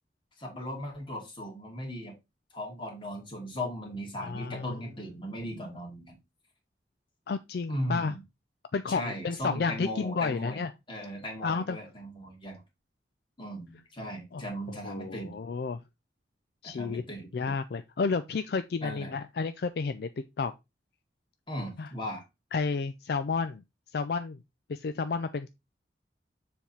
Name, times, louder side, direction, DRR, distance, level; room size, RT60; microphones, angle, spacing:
voice 1, 0.4-2.1 2.5-6.2 7.7-8.2 8.9-10.6 10.9-12.6 13.4-15.4 16.6-17.3 18.8-19.2 21.5-22.2, equal, 30° left, 2.3 m, -37 dB
voice 2, 4.2-4.8 7.3-8.2 8.7-10.7 11.4-11.8 14.3-14.4 14.7-15.8 16.6-17.0 17.3-20.1 20.4-20.5 21.8-21.9 22.5-23.6 23.9-24.4 24.7-25.5, left 4 dB, 60° left, 0.4 m, -31 dB
7.1 x 3.5 x 4.4 m
head